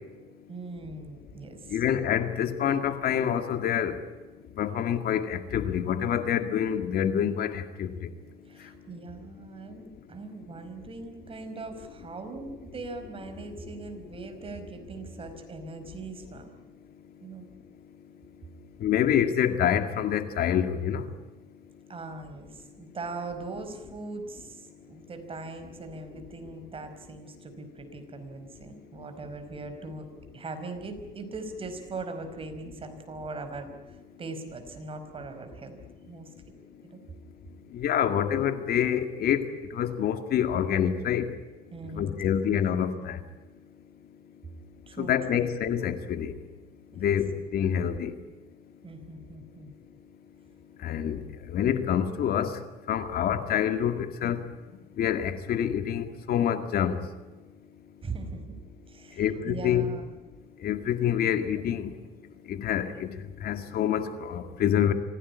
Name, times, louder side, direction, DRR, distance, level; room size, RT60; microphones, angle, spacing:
voice 1, 0.5-1.8 8.5-16.6 17.2-17.5 21.9-30.1 30.3-35.8 36.1-36.3 36.8-37.0 41.7-42.1 44.9-45.4 46.9-47.1 48.8-49.7 58.0-58.5 58.9-60.1, right 3 dB, 35° right, 7 dB, 4.8 m, -40 dB
voice 2, 1.7-4.0 4.6-8.1 13.7-13.8 18.8-21.1 37.7-41.3 41.9-43.2 45.0-46.4 47.0-48.1 50.8-52.6 52.9-54.5 55.0-57.0 59.2-59.9 60.6-61.9 62.5-63.2 63.4-64.9, left 9 dB, 65° left, 8 dB, 2.1 m, -27 dB
25.5 x 17.0 x 9.6 m, 1.3 s
cardioid pair, 110°, 17 cm